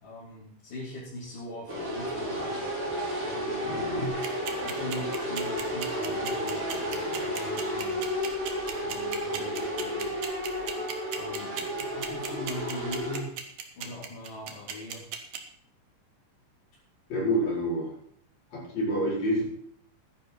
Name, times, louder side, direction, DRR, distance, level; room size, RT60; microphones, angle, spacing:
voice 1, 0.0-2.6 3.2-3.8 4.6-8.0 8.8-10.2 11.2-13.3 13.7-15.0 17.4-17.5, left 1 dB, 70° left, -9 dB, 5.3 m, -41 dB
sound 1, 1.7-13.2, equal, 25° right, 4.1 m, -32 dB
voice 2, 3.6-4.1 17.1-17.9 18.5-19.4, equal, 50° left, -5 dB, 6.3 m, -28 dB
sound 2, 4.0-15.4, right 8 dB, 60° right, 2.3 m, -35 dB
15.0 x 11.5 x 4.2 m, 0.63 s
omnidirectional pair, 3.8 m